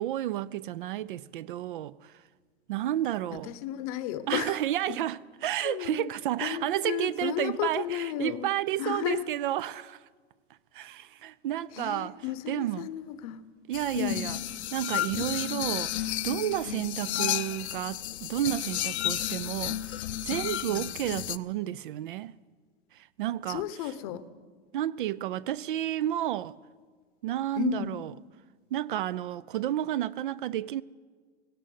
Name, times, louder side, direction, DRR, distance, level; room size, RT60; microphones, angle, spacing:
voice 1, 0.0-2.1 2.7-3.5 4.3-10.0 10.7-12.9 13.7-14.4 14.7-22.4 22.9-23.9 24.7-26.5 27.2-28.1 28.7-30.8, right 12 dB, 50° right, 0.5 m, -31 dB
voice 2, 3.3-4.6 4.9-5.0 5.6-6.1 6.4-8.5 8.8-9.2 11.7-13.4 13.9-14.3 15.1-15.5 16.7-17.0 20.7-20.9 23.5-24.2 27.6-28.0, left 12 dB, 35° left, 0.8 m, -33 dB
sound 1, 13.7-21.4, left 13 dB, 90° left, 0.7 m, -32 dB
17.5 x 17.0 x 9.3 m
supercardioid pair, 175°, 32 cm